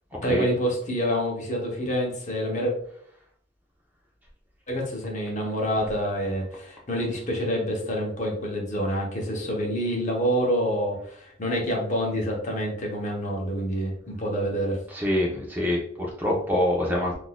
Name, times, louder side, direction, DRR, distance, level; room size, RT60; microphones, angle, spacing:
voice 1, 0.2-2.7 4.7-14.8, equal, 40° left, -1 dB, 0.8 m, -27 dB
voice 2, 14.9-17.2, left 1 dB, 10° right, -3 dB, 0.5 m, -25 dB
3.7 x 2.5 x 2.2 m, 0.64 s
head